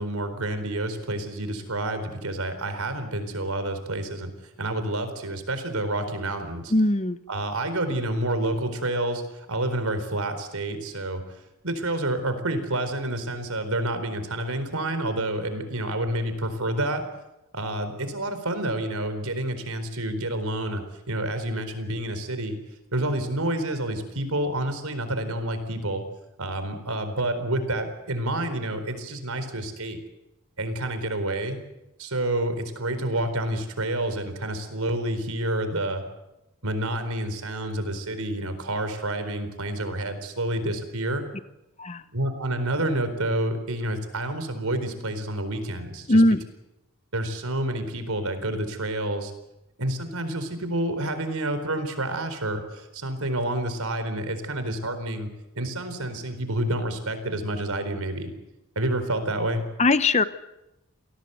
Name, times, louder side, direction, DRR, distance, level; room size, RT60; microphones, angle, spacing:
voice 1, 0.0-4.3 4.6-6.7 7.3-11.2 11.6-17.0 17.5-22.6 22.9-26.0 26.4-30.0 30.6-31.6 32.0-36.0 36.6-41.2 42.1-46.2 47.1-49.3 49.8-55.3 55.5-58.3 58.8-59.7, right 1 dB, 90° right, 10 dB, 4.3 m, -29 dB
voice 2, 6.7-7.2 41.8-42.0 46.1-46.4 59.8-60.2, left 2 dB, 30° left, 13 dB, 0.9 m, -19 dB
28.0 x 18.5 x 8.1 m, 0.93 s
head